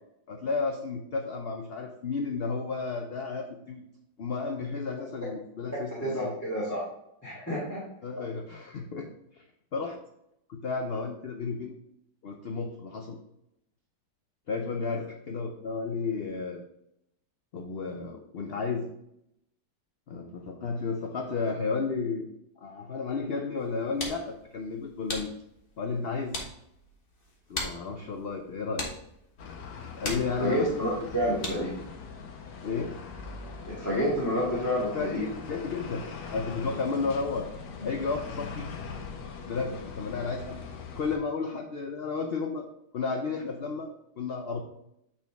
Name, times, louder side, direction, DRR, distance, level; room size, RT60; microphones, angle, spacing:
voice 1, 0.3-3.8 4.2-6.3 8.0-9.4 9.7-10.0 10.5-11.7 12.2-13.2 14.5-16.6 17.5-18.9 20.1-22.2 22.6-25.3 25.8-26.3 27.5-28.9 30.0-30.7 32.6-33.0 34.9-37.5 37.8-38.7 39.5-40.7 41.0-42.7 42.9-44.6, left 4 dB, 65° left, 3 dB, 0.6 m, -32 dB
voice 2, 6.0-6.8 7.2-7.8 30.4-31.7 33.7-35.2, equal, 10° left, -9 dB, 1.8 m, -29 dB
sound 1, 23.6-31.9, left 2 dB, 35° left, 1.3 m, -40 dB
sound 2, 29.4-41.2, left 5 dB, 80° left, 1.5 m, -41 dB
8.8 x 4.3 x 3.4 m, 0.78 s
omnidirectional pair, 1.8 m